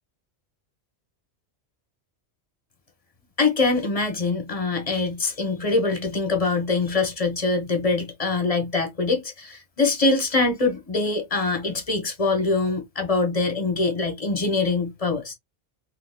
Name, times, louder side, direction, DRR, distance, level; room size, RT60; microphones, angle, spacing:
voice 1, 3.4-15.3, left 3 dB, 35° left, 1.2 m, -24 dB
3.9 x 3.2 x 2.2 m
omnidirectional pair, 1.1 m